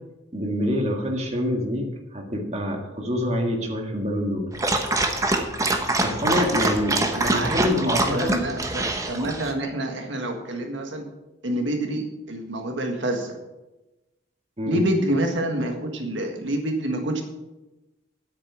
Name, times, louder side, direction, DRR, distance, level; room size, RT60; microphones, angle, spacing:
voice 1, 0.3-4.5 6.0-8.4 14.6-14.8, left 1 dB, 35° right, 1 dB, 1.8 m, -26 dB
Dog, 4.5-9.5, right 2 dB, 15° right, 1.0 m, -24 dB
voice 2, 7.1-11.0 11.4-13.4 14.7-17.2, right 1 dB, 70° right, 4 dB, 1.7 m, -27 dB
10.5 x 8.7 x 6.2 m, 1.0 s
head